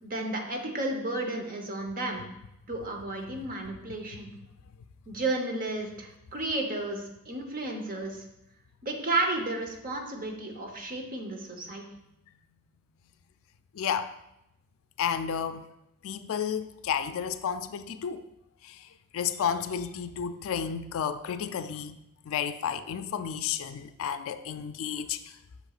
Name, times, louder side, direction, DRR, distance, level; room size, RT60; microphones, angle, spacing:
voice 1, 0.0-2.2 2.7-4.3 5.1-8.2 8.8-11.8, right 2 dB, 40° right, 1.0 m, -32 dB
voice 2, 13.7-14.1 15.0-15.7 16.0-18.2 18.6-18.8 19.1-22.0 22.3-25.2, left 8 dB, 65° left, 0.4 m, -32 dB
8.0 x 6.3 x 2.4 m
head